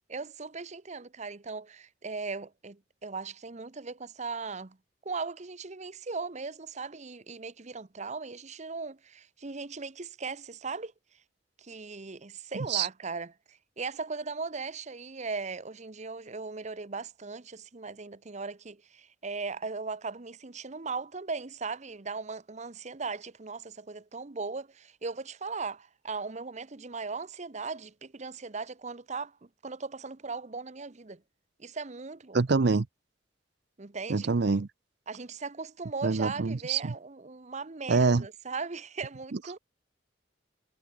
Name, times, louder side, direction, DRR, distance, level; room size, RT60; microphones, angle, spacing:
voice 1, 0.1-4.8 5.0-10.9 11.6-31.2 31.6-32.4 33.8-34.3 35.1-39.6, right 4 dB, 40° right, 0.9 m, -38 dB
voice 2, 32.3-32.9 34.1-34.7 36.0-36.9 37.9-38.2 39.3-39.4, right 4 dB, 60° right, 0.6 m, -25 dB
head